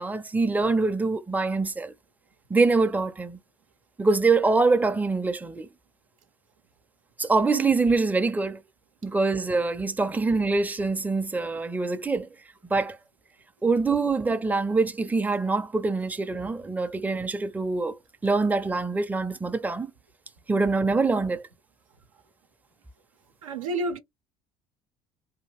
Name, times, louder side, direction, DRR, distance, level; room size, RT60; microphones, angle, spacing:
voice 1, 0.0-1.9 2.5-3.4 4.0-5.7 7.2-8.6 9.0-12.3 12.7-13.0 13.6-19.9 20.5-21.4, right 3 dB, 10° right, 0.5 m, -24 dB
voice 2, 23.4-24.0, right 2 dB, 85° right, 0.6 m, -29 dB
2.8 x 2.4 x 3.1 m
hypercardioid pair, 60°, 17 cm